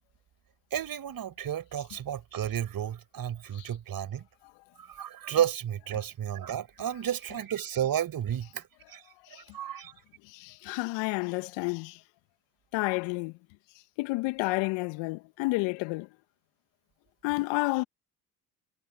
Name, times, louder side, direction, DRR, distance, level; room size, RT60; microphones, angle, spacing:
voice 1, 0.7-4.3 4.8-9.0 9.3-9.9, right 10 dB, 45° right, 5.7 m, -32 dB
voice 2, 10.3-12.0 12.7-13.3 14.0-16.1 17.2-17.8, left 24 dB, 65° left, 1.9 m, -30 dB
hypercardioid pair, 55°, 47 cm